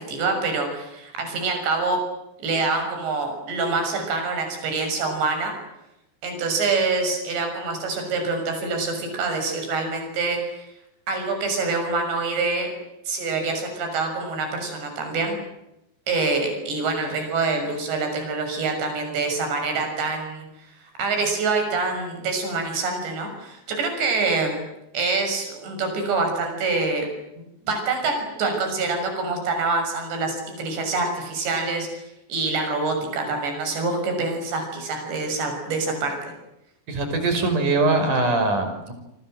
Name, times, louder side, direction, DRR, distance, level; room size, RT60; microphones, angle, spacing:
voice 1, 0.0-2.0 2.4-5.6 6.2-10.7 11.1-12.7 13.1-15.4 16.1-20.5 20.7-24.6 24.9-27.1 27.4-31.9 32.3-36.2, right 3 dB, 80° right, 5 dB, 8.7 m, -26 dB
voice 2, 36.9-38.9, right 3 dB, 45° right, 7 dB, 6.8 m, -22 dB
28.5 x 25.0 x 7.8 m, 0.87 s
omnidirectional pair, 5.0 m